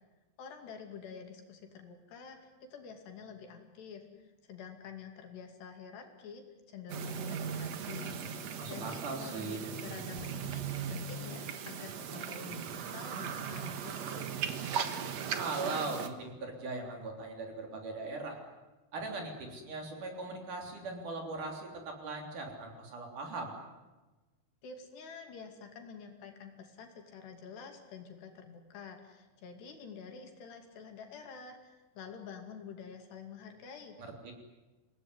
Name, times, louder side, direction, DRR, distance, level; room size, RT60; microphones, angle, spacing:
voice 1, 0.4-14.3 24.6-34.0, left 6 dB, 65° left, 4 dB, 4.6 m, -48 dB
sound 1, 6.9-16.1, right 7 dB, 60° right, 1.7 m, -38 dB
voice 2, 8.6-9.6 15.4-18.4 18.9-23.6 34.0-34.3, right 3 dB, 45° right, 2 dB, 4.6 m, -39 dB
27.0 x 18.5 x 9.8 m, 1.2 s
omnidirectional pair, 5.2 m